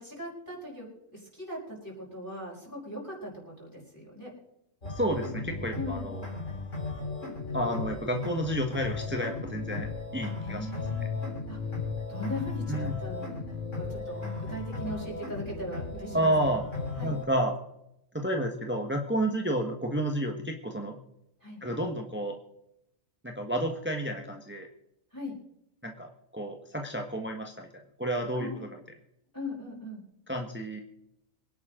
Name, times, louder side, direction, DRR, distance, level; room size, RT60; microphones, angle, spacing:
voice 1, 0.0-4.3 5.7-6.1 10.4-11.1 11.5-11.6 12.1-13.4 13.7-16.3 17.0-17.1 21.4-21.6 25.1-25.3 28.3-28.6 29.3-30.0, left 1 dB, 15° left, -5 dB, 5.0 m, -39 dB
sound 1, 4.8-17.2, left 4 dB, 65° left, 4.6 m, -36 dB
voice 2, 4.9-6.3 7.5-10.7 12.7-13.0 16.1-16.6 17.0-17.6 18.1-21.0 21.6-22.4 23.2-24.7 25.8-27.7 28.0-28.5 30.3-30.8, right 1 dB, 10° right, 3 dB, 1.5 m, -30 dB
24.0 x 11.0 x 3.9 m, 0.80 s
omnidirectional pair, 1.4 m